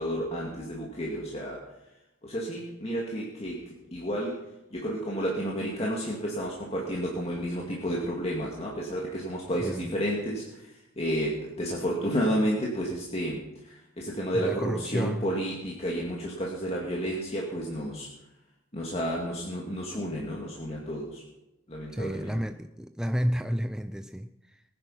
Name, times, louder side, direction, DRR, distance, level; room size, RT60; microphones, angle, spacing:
voice 1, 0.0-1.7 2.2-4.4 4.7-18.1 18.7-21.2 21.7-22.4, equal, 30° left, -3 dB, 2.1 m, -31 dB
voice 2, 9.6-9.9 14.3-15.2 21.9-24.6, equal, 5° right, 8 dB, 0.4 m, -31 dB
20.0 x 9.8 x 5.7 m, 0.96 s
head